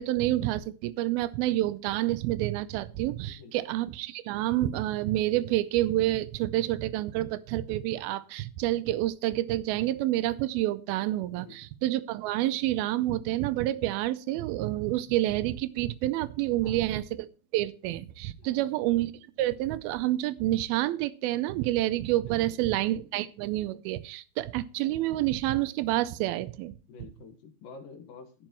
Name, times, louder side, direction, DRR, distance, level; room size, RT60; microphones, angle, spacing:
voice 1, 0.0-17.3 17.5-19.1 19.4-26.7, right 15 dB, 85° right, 2.5 m, -28 dB
voice 2, 18.4-18.7 22.3-22.6 26.9-28.5, left 4 dB, 75° left, 2.9 m, -49 dB
12.0 x 8.8 x 3.0 m
omnidirectional pair, 4.3 m